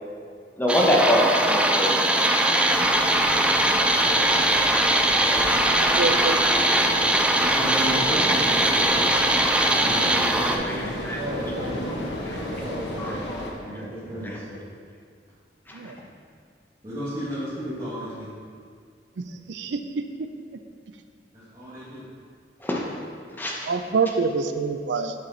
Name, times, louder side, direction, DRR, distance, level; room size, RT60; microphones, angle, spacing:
voice 1, 0.6-2.0 6.5-6.6 9.4-9.6 10.5-10.6 11.0-11.2 11.8-11.9 12.5-12.6 13.0-13.8 14.2-14.4 15.7-15.9 22.6-22.8 23.4-23.5, equal, 10° left, -3 dB, 0.9 m, -25 dB
sound 1, 0.7-10.6, right 1 dB, 5° right, 0.4 m, -21 dB
sound 2, 2.6-13.5, left 1 dB, 75° left, 1.0 m, -35 dB
voice 2, 5.7-6.4 15.7-16.0 19.2-20.0 23.7-25.1, right 4 dB, 80° right, 8 dB, 0.4 m, -26 dB
voice 3, 7.4-9.1 9.8-13.2 13.6-14.6 16.8-18.3 21.3-22.0, right 1 dB, 30° right, -12 dB, 1.6 m, -33 dB
sound 3, 7.5-13.1, equal, 60° left, 1.8 m, -39 dB
8.3 x 4.8 x 3.9 m, 2.1 s
head